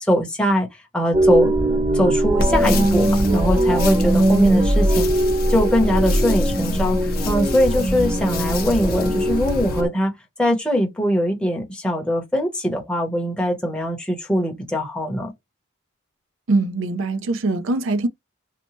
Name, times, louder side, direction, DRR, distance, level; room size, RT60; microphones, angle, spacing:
voice 1, 0.1-0.7 0.9-1.5 1.9-5.1 5.5-10.1 10.4-15.3, equal, 5° left, 0.8 m, -21 dB
sound 1, 1.1-9.9, right 1 dB, 20° right, 0.3 m, -20 dB
sound 2, 2.4-9.8, left 3 dB, 45° left, 0.6 m, -30 dB
voice 2, 16.5-18.1, right 2 dB, 70° right, 0.5 m, -22 dB
2.8 x 2.1 x 3.0 m
head